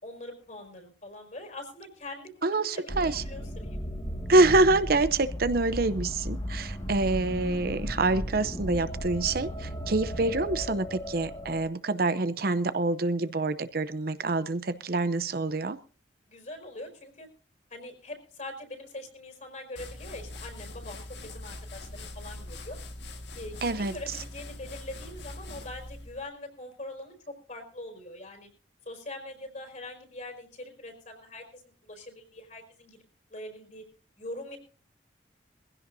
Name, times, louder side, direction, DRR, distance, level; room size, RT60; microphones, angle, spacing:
voice 1, 0.0-3.8 16.3-17.3 17.7-21.0 21.3-22.8 23.3-28.5 28.8-33.0 33.3-33.8 34.2-34.6, left 1 dB, 45° left, 4 dB, 5.0 m, -43 dB
voice 2, 2.4-3.2 4.3-15.8 23.6-24.0, right 2 dB, 55° right, 12 dB, 0.7 m, -26 dB
sound 1, 2.9-11.6, equal, 30° left, 1.9 m, -36 dB
sound 2, 19.8-26.3, left 2 dB, 70° left, 1.8 m, -42 dB
22.5 x 16.0 x 2.7 m, 0.38 s
head